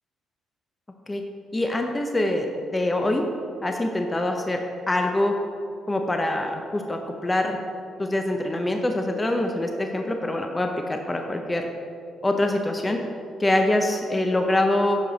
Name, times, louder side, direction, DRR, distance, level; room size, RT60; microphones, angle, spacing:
voice 1, 1.5-2.5 2.7-3.2 3.6-4.6 4.9-5.3 5.9-7.6 8.0-11.7 12.2-13.0 13.4-15.0, left 1 dB, 20° left, 4 dB, 0.6 m, -24 dB
10.5 x 4.8 x 4.0 m, 2.5 s
cardioid pair, 90°, 0 cm